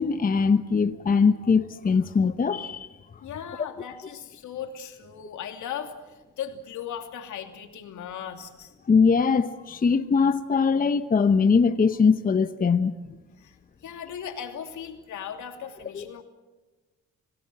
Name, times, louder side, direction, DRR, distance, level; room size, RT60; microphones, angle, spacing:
voice 1, 0.0-2.9 8.9-12.9 15.9-16.0, left 5 dB, 30° left, 0.9 m, -21 dB
voice 2, 3.2-8.7 13.4-16.2, left 8 dB, 75° left, 2.9 m, -38 dB
28.0 x 18.0 x 7.8 m
cardioid pair, 90°, 30 cm